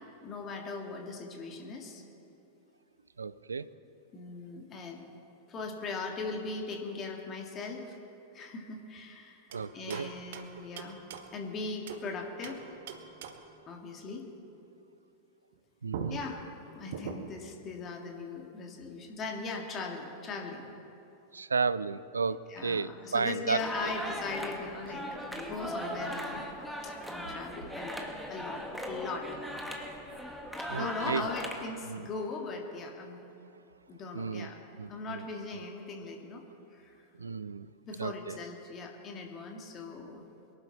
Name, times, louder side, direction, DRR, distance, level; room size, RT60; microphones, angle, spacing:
voice 1, 0.2-2.0 4.1-5.0 5.5-8.0 8.3-9.4 9.7-11.0 11.3-12.6 13.7-14.3 16.1-20.7 22.5-26.5 26.8-29.3 30.7-33.2 33.9-34.6 34.9-36.4 36.7-37.0 37.8-40.2, left 3 dB, 30° left, 2 dB, 2.0 m, -39 dB
voice 2, 3.2-3.7 9.5-10.1 15.8-16.2 21.3-23.9 30.7-31.3 31.8-32.1 34.1-34.5 34.8-35.3 37.2-37.7 38.0-38.4, right 5 dB, 75° right, 18 dB, 0.4 m, -33 dB
sound 1, 9.5-12.1 12.4-13.6 15.5-15.6 15.9-17.5, right 6 dB, 55° right, 1.0 m, -43 dB
sound 2, 23.6-31.6, equal, ahead, 1.6 m, -38 dB
22.5 x 11.5 x 4.1 m, 2.8 s
figure-of-eight pair, 90°, 0 cm